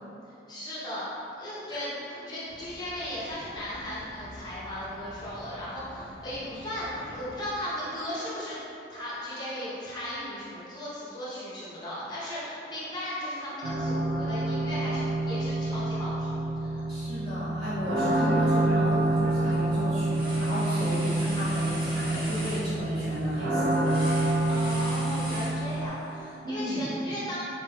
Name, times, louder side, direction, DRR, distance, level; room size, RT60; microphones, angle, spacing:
voice 1, 0.5-1.1 1.4-8.6 8.9-16.8 24.5-27.4, left 1 dB, 25° left, -8 dB, 0.6 m, -36 dB
sound 1, 2.5-7.5, left 1 dB, 60° left, 0.3 m, -47 dB
sound 2, 13.6-25.9, right 2 dB, 85° right, 0.5 m, -27 dB
voice 2, 16.9-24.0 26.4-26.9, equal, 60° right, -12 dB, 1.4 m, -33 dB
sound 3, 18.9-19.2 19.5-26.0, equal, 25° right, 1.0 m, -40 dB
4.2 x 3.2 x 2.2 m, 2.9 s
head